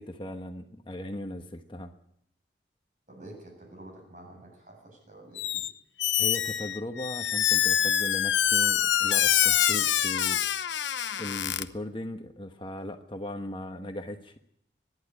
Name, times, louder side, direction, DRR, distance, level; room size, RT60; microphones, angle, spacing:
voice 1, 0.0-1.9 6.2-10.4 11.2-14.4, left 1 dB, 25° left, 5 dB, 1.2 m, -38 dB
voice 2, 3.1-5.7, right 1 dB, 45° right, 2 dB, 7.8 m, -48 dB
Squeak, 5.4-5.7 6.0-11.6, left 10 dB, 85° left, 0.9 m, -25 dB
23.5 x 11.5 x 9.7 m, 0.74 s
head